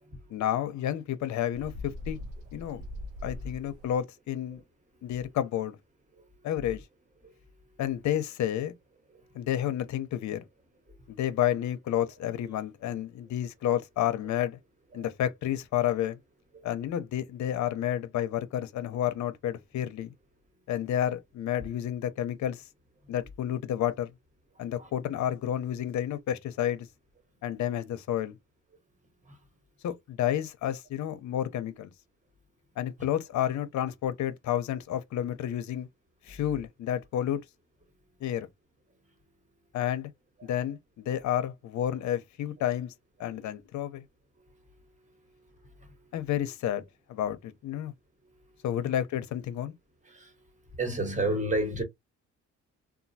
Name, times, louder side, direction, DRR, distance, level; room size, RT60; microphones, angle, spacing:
voice 1, 0.3-2.2 2.5-2.8 3.2-4.6 5.0-5.8 6.4-6.8 7.8-8.7 9.3-10.4 11.1-14.6 14.9-16.2 16.6-20.1 20.7-22.6 23.1-24.1 24.6-26.9 27.4-28.4 29.8-31.9 32.8-35.9 36.2-37.4 38.2-38.5 39.7-40.1 40.4-42.9 43.2-44.0 46.1-46.8 47.1-47.9 48.6-49.7, left 11 dB, 70° left, 0.7 m, -30 dB
Bird, 1.5-4.0, left 1 dB, 90° right, 0.8 m, -41 dB
voice 2, 50.8-51.8, right 1 dB, 25° right, 1.4 m, -32 dB
3.0 x 2.3 x 2.7 m
cardioid pair, 90°, 30 cm